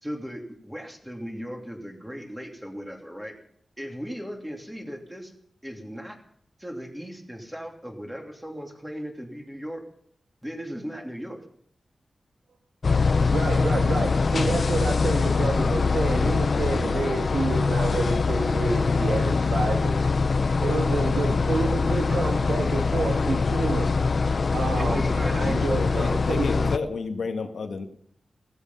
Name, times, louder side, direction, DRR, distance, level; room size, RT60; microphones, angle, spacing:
voice 1, 0.0-3.4 3.8-5.3 5.6-6.2 6.6-9.8 10.4-11.4 24.5-25.7, equal, 5° right, 2 dB, 3.0 m, -37 dB
sound 1, 12.8-26.8, left 4 dB, 50° left, 0.8 m, -23 dB
voice 2, 13.0-20.0 20.6-23.9 24.5-26.7, right 3 dB, 85° right, 0 dB, 2.4 m, -29 dB
voice 3, 25.7-27.9, left 4 dB, 85° left, 6 dB, 1.8 m, -31 dB
16.5 x 15.5 x 5.6 m, 0.66 s
wide cardioid pair, 140°, 0 cm